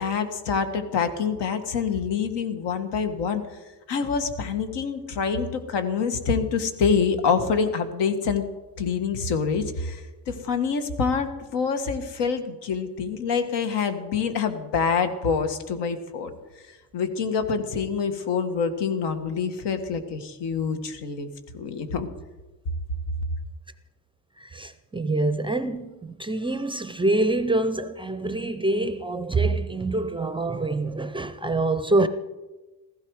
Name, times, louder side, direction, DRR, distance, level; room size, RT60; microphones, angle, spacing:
voice 1, 0.0-3.4 3.9-8.4 8.8-16.4 16.9-21.3 21.5-22.1, left 5 dB, 85° left, 1.7 m, -26 dB
voice 2, 24.4-32.1, right 2 dB, 15° right, 0.4 m, -25 dB
16.0 x 15.0 x 4.8 m
cardioid pair, 160°, 40 cm